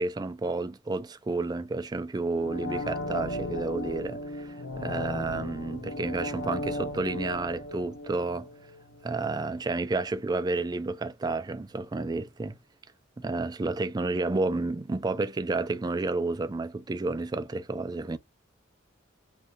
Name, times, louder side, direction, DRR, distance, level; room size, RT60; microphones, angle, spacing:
voice 1, 0.0-8.5 9.0-12.6 13.2-18.2, right 3 dB, 20° right, 0.3 m, -31 dB
sound 1, 2.3-9.2 9.5-9.6, left 1 dB, 70° left, 1.0 m, -36 dB
2.6 x 2.5 x 3.3 m
head